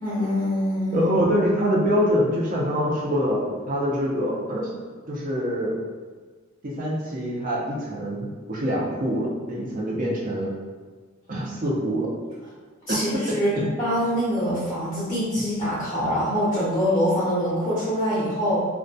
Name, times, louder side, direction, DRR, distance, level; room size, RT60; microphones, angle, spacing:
voice 1, 0.0-1.1 12.9-13.5 13.8-18.6, equal, 15° left, -10 dB, 0.6 m, -24 dB
voice 2, 0.9-4.8 5.1-5.7 6.6-10.5 11.3-12.1 12.9-13.0 13.3-13.7, equal, 45° right, -4 dB, 0.5 m, -25 dB
2.2 x 2.2 x 2.6 m, 1.5 s
head